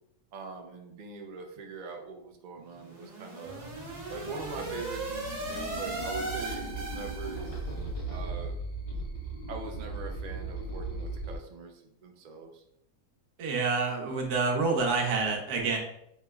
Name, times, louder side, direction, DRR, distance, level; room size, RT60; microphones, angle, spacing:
voice 1, 0.3-3.7 4.1-7.5 8.1-8.6 9.5-12.6, right 4 dB, 65° right, 3 dB, 0.4 m, -42 dB
sound 1, 2.7-7.8, right 2 dB, 35° right, 0.8 m, -38 dB
sound 2, 3.4-11.3, right 2 dB, 25° left, 1.0 m, -38 dB
voice 2, 13.4-15.8, right 4 dB, 90° right, 1 dB, 1.4 m, -28 dB
5.8 x 3.1 x 2.3 m, 0.76 s
omnidirectional pair, 1.6 m